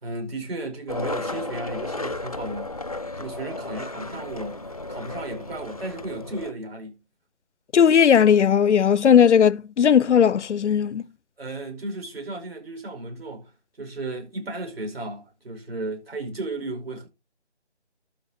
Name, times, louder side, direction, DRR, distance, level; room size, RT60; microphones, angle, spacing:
voice 1, 0.0-2.9 3.2-7.0 11.4-13.5 13.8-17.1, right 2 dB, 60° right, 5.2 m, -34 dB
Skateboard, 0.9-6.5, left 2 dB, 35° left, 0.5 m, -34 dB
voice 2, 7.7-11.0, left 8 dB, 90° left, 0.5 m, -17 dB
12.5 x 5.0 x 4.2 m
figure-of-eight pair, 160°, 34 cm